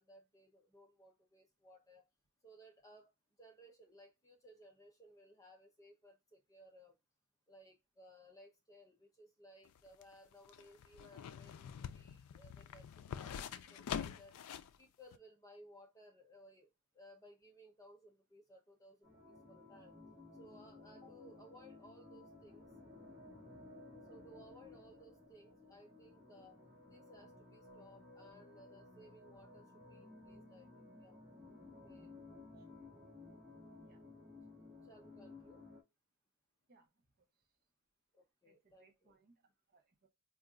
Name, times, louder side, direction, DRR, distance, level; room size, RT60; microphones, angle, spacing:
voice 1, 0.0-2.0 2.4-3.1 3.4-7.0 7.5-14.4 14.8-20.0 20.4-22.7 24.1-26.6 26.9-31.2 31.8-32.1 34.8-35.6 38.1-39.2, equal, 15° left, 0.6 m, -61 dB
sound 1, 9.7-14.8 15.1-15.2, left 8 dB, 90° left, 0.4 m, -45 dB
sound 2, 19.0-35.8, left 2 dB, 10° right, 1.4 m, -57 dB
voice 2, 36.7-37.3 38.4-40.1, right 3 dB, 45° right, 0.6 m, -71 dB
3.9 x 2.4 x 2.4 m
head